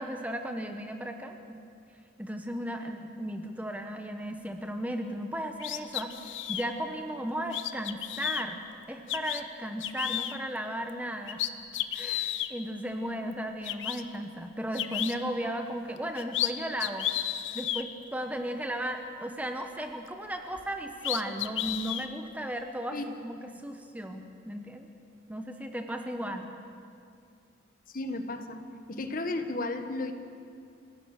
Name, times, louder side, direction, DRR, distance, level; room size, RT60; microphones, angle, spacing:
voice 1, 0.0-1.6 2.2-6.1 6.5-8.6 8.9-11.4 11.9-17.1 17.5-24.9 25.3-26.5, equal, 10° right, 5 dB, 1.1 m, -35 dB
sound 1, 5.6-6.7 7.5-8.4 9.1-9.4 9.8-10.3 10.9-11.0 11.3-12.5 13.3-13.4 13.6-14.0 14.7-15.1 16.0-16.5 16.8-17.8 20.6-20.7 21.0-22.1, left 12 dB, 75° left, 0.9 m, -32 dB
voice 2, 27.9-28.6 28.9-30.1, left 2 dB, 45° left, 7 dB, 1.4 m, -33 dB
29.5 x 17.0 x 6.6 m, 2.4 s
head